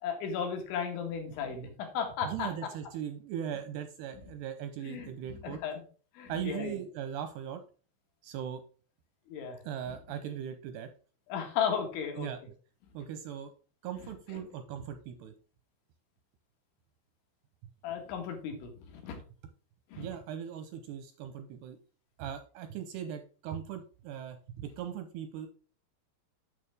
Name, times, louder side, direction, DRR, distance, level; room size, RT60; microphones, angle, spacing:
voice 1, 0.0-2.5 4.8-5.8 6.2-6.8 9.3-9.6 9.9-10.0 11.3-12.3 14.3-14.4 17.8-19.2 19.9-20.1, left 7 dB, 80° left, 3 dB, 4.1 m, -35 dB
voice 2, 2.2-5.6 6.3-7.6 8.2-8.6 9.7-10.9 12.2-12.4 12.9-13.5 13.8-15.3 20.0-21.8 22.2-25.5, right 9 dB, 85° right, 8 dB, 2.5 m, -39 dB
8.8 x 6.7 x 3.5 m, 0.38 s
omnidirectional pair, 5.3 m